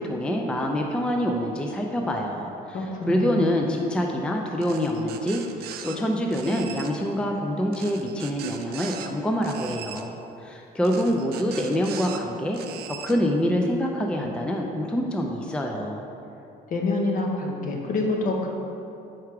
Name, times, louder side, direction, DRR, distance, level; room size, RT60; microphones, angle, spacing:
voice 1, 0.0-12.6 13.0-16.0, equal, 5° left, 1 dB, 0.4 m, -26 dB
voice 2, 2.7-3.5 16.7-18.5, left 3 dB, 50° left, 0 dB, 0.9 m, -27 dB
sound 1, 4.6-6.0 6.3-6.9 7.7-9.1 9.4-10.0 10.8-12.2 12.5-13.1, right 9 dB, 70° right, 0.4 m, -40 dB
4.7 x 4.7 x 4.6 m, 2.8 s
cardioid pair, 110°, 17 cm